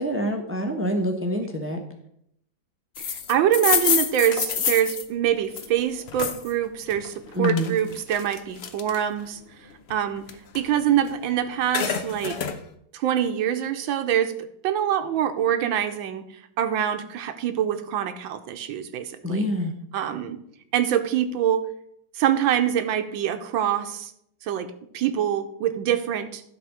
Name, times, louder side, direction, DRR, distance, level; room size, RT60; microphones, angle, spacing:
voice 1, 0.0-1.8 7.3-7.7 19.2-19.7, equal, 15° right, 3 dB, 0.5 m, -26 dB
sound 1, 3.0-6.5 6.9-9.3 9.7-11.2 11.5-12.6, left 7 dB, 90° left, 0.5 m, -28 dB
voice 2, 3.0-9.4 9.9-10.3 10.5-12.4 12.9-16.2 16.6-19.5 19.9-20.4 20.7-21.6 22.1-24.1 24.4-26.4, right 10 dB, 80° right, 9 dB, 1.5 m, -25 dB
11.0 x 4.0 x 7.0 m, 0.72 s
omnidirectional pair, 2.2 m